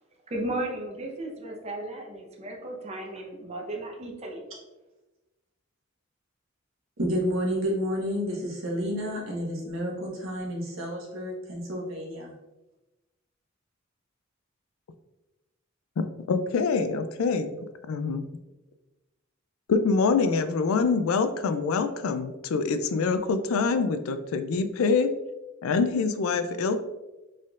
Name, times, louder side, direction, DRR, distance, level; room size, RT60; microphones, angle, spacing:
voice 1, 0.3-4.4, right 1 dB, 30° right, 0 dB, 0.7 m, -35 dB
voice 2, 7.0-12.3, equal, 70° right, -3 dB, 1.3 m, -30 dB
voice 3, 16.0-17.5 17.9-18.2 19.7-25.1 25.6-26.8, left 4 dB, 80° left, 10 dB, 0.4 m, -25 dB
4.3 x 3.7 x 2.4 m, 1.1 s
head